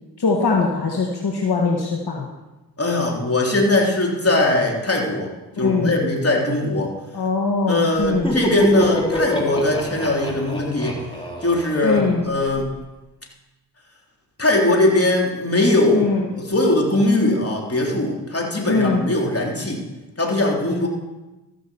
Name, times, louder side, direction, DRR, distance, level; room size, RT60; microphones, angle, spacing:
voice 1, 0.2-2.3 5.6-5.9 7.1-8.3 11.8-12.2 15.9-16.2 18.7-19.0, left 4 dB, 65° left, 0 dB, 1.6 m, -21 dB
voice 2, 2.8-5.3 5.6-6.9 7.7-11.0 11.4-12.7 14.4-16.0 16.3-19.8 20.2-20.9, left 2 dB, 35° left, -1 dB, 3.3 m, -20 dB
Laughter, 8.0-12.7, equal, 10° left, 3.0 m, -27 dB
14.0 x 6.2 x 6.9 m, 1.1 s
cardioid pair, 45°, 42 cm